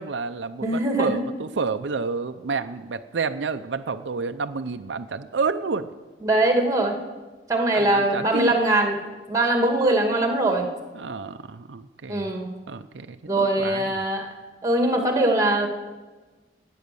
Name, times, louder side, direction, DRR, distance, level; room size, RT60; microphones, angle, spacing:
voice 1, 0.0-5.9 7.7-8.5 10.9-12.3 12.7-14.0, right 4 dB, 85° right, 8 dB, 0.6 m, -29 dB
voice 2, 0.6-1.2 6.2-7.0 7.5-9.0 9.3-10.7 12.1-12.5 13.2-14.3 14.6-15.7, right 1 dB, 20° right, 4 dB, 2.0 m, -22 dB
20.0 x 8.6 x 6.8 m, 1.3 s
head